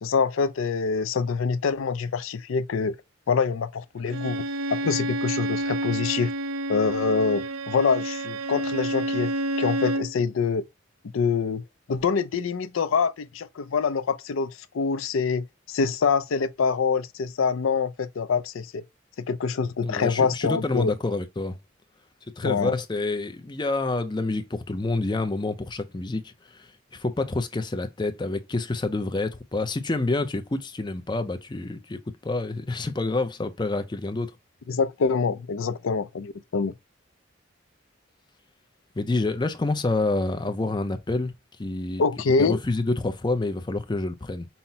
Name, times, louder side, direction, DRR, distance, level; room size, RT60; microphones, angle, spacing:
voice 1, 0.0-3.0 3.3-4.4 4.8-6.3 6.7-10.6 11.1-11.6 11.9-18.8 19.3-20.9 22.4-22.7 34.7-36.7 42.0-42.6, left 5 dB, 75° left, 0.4 m, -25 dB
Bowed string instrument, 4.1-10.1, right 1 dB, 80° right, 0.5 m, -29 dB
voice 2, 19.8-21.6 22.3-34.3 39.0-41.3 41.6-42.0 42.4-44.5, left 2 dB, 20° left, 0.4 m, -28 dB
5.6 x 2.1 x 2.7 m
head